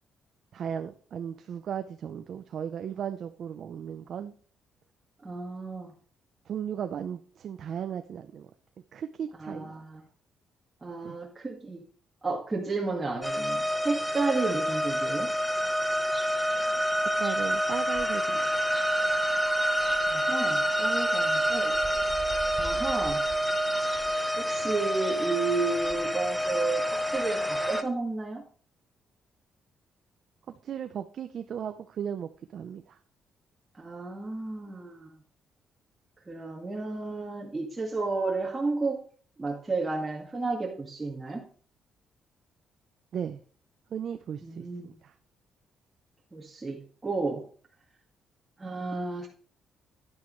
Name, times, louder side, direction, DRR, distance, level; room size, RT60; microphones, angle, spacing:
voice 1, 0.5-4.3 6.5-8.5 8.9-9.7 11.0-11.2 17.2-18.4 30.6-33.0 43.1-43.4 43.9-44.7 45.0-45.1, right 8 dB, 60° right, 0.7 m, -36 dB
voice 2, 5.2-5.9 9.4-10.0 10.8-11.8 12.2-15.3 20.1-21.8 22.6-23.2 24.4-28.4 33.8-35.1 36.3-39.0 39.4-41.4 44.4-44.9 46.3-47.4 48.6-49.3, right 3 dB, 20° right, 2.0 m, -32 dB
sound 1, 13.2-27.8, equal, 5° left, 1.1 m, -27 dB
11.0 x 9.5 x 3.2 m
cardioid pair, 105°, 0 cm